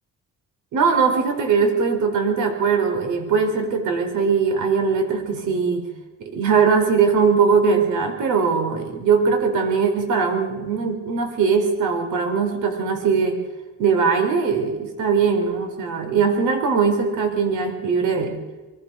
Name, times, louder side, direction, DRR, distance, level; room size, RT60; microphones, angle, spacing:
voice 1, 0.7-5.9 6.2-13.4 13.8-18.4, right 5 dB, 80° right, 5 dB, 4.7 m, -20 dB
24.0 x 18.0 x 6.4 m, 1.2 s
cardioid pair, 90°, 30 cm